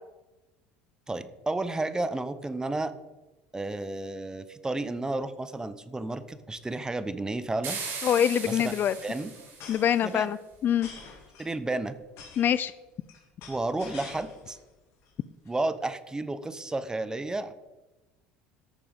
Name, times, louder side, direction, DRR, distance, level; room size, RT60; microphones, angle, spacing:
voice 1, 1.1-2.9 3.5-7.8 8.4-8.7 9.0-9.3 10.0-10.3 11.4-12.0 13.5-14.6 15.5-17.5, right 2 dB, 15° right, 13 dB, 0.9 m, -32 dB
sound 1, 6.0-6.2 6.5-6.6 6.8-7.1 8.0-14.6 15.0-15.5, left 5 dB, 65° left, 2.8 m, -48 dB
sound 2, 7.6-10.0, right 5 dB, 60° right, 4.8 m, -38 dB
voice 2, 8.0-8.9 9.7-10.4 10.6-10.9 12.4-12.7, left 9 dB, 45° left, 16 dB, 0.4 m, -24 dB
13.5 x 6.8 x 5.3 m, 1.1 s
hypercardioid pair, 85°, 5 cm